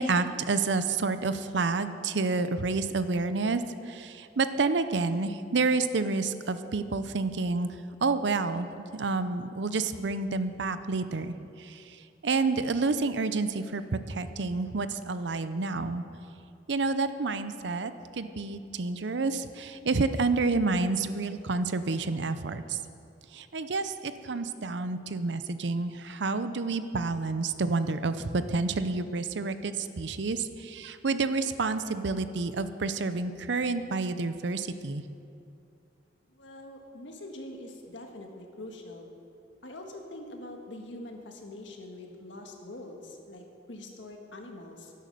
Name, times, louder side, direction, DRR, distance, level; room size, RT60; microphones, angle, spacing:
voice 1, 0.0-7.7 8.0-8.7 8.9-11.3 11.6-11.8 12.2-16.0 16.7-22.8 23.3-35.0, right 3 dB, 70° right, 11 dB, 0.6 m, -29 dB
voice 2, 36.3-39.1 39.6-44.9, left 1 dB, 90° left, 2 dB, 1.7 m, -44 dB
11.5 x 11.0 x 6.8 m, 2.6 s
head